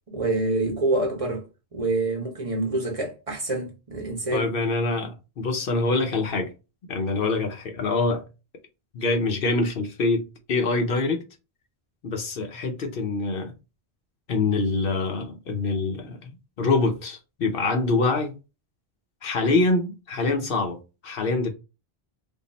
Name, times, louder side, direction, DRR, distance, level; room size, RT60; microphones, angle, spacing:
voice 1, 0.1-1.4 1.7-4.5, right 2 dB, 35° right, 0.9 m, -26 dB
voice 2, 4.3-6.5 6.9-8.3 8.9-11.2 12.0-13.5 14.3-18.3 19.2-21.5, left 3 dB, 65° left, 0.8 m, -25 dB
3.6 x 2.0 x 3.9 m
omnidirectional pair, 1.1 m